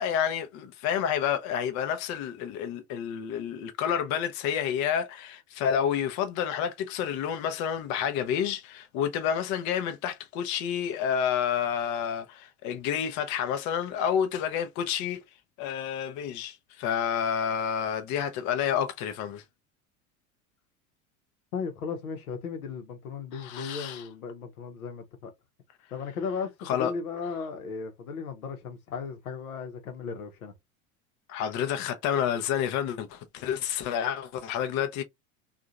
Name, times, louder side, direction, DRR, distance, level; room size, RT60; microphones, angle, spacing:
voice 1, 0.0-15.2 15.6-19.4 23.3-24.0 26.7-26.9 31.3-35.0, left 8 dB, 40° left, 0.6 m, -29 dB
voice 2, 21.5-25.3 25.9-30.5, left 5 dB, 80° left, 0.9 m, -36 dB
2.7 x 2.4 x 2.3 m
hypercardioid pair, 80°, 42 cm